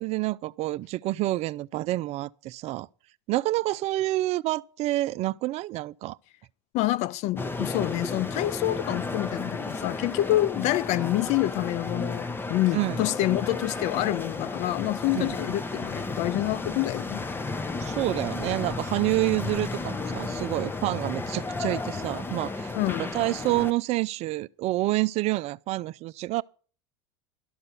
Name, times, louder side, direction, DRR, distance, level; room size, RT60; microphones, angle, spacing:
voice 1, 0.0-2.9 3.3-6.2 12.7-13.0 15.1-15.4 17.8-22.7 23.0-26.4, right 17 dB, 50° right, 0.5 m, -28 dB
voice 2, 6.7-17.2 22.7-23.1, left 16 dB, 55° left, 0.5 m, -27 dB
sound 1, 7.4-23.7, left 3 dB, 15° left, 0.8 m, -33 dB
12.5 x 5.5 x 8.2 m
hypercardioid pair, 100°, 14 cm